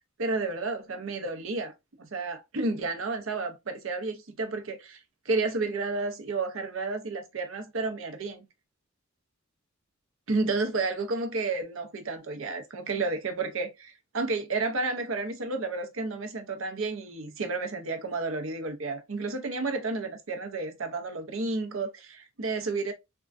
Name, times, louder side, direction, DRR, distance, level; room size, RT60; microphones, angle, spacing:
voice 1, 0.2-1.7 2.0-5.0 5.3-8.5 10.3-22.9, right 3 dB, 75° right, 0.7 m, -31 dB
3.6 x 2.3 x 2.4 m
head